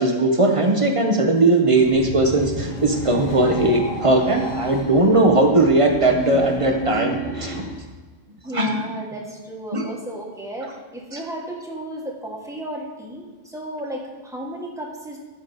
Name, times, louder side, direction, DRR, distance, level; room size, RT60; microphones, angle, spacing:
voice 1, 0.0-7.6 8.5-8.8 9.7-9.8, right 2 dB, 30° right, 3 dB, 0.9 m, -18 dB
sound 1, 1.6-7.9, equal, 65° left, 2.0 m, -30 dB
voice 2, 8.4-15.2, right 1 dB, ahead, -1 dB, 1.4 m, -34 dB
13.0 x 5.2 x 4.0 m, 1.3 s
omnidirectional pair, 1.4 m